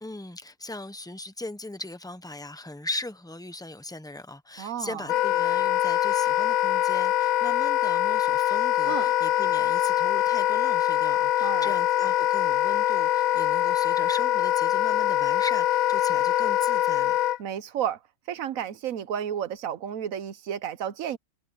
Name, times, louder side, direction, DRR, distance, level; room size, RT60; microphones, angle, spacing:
voice 1, 0.0-17.2, left 2 dB, 5° left, 0.7 m, -39 dB
voice 2, 4.6-5.0 8.9-9.1 11.4-11.7 17.4-18.0 18.3-21.2, right 9 dB, 75° right, 1.2 m, -32 dB
Wind instrument woodwind instrument, 5.1-17.4, left 13 dB, 90° left, 1.0 m, -23 dB
omnidirectional pair, 1.4 m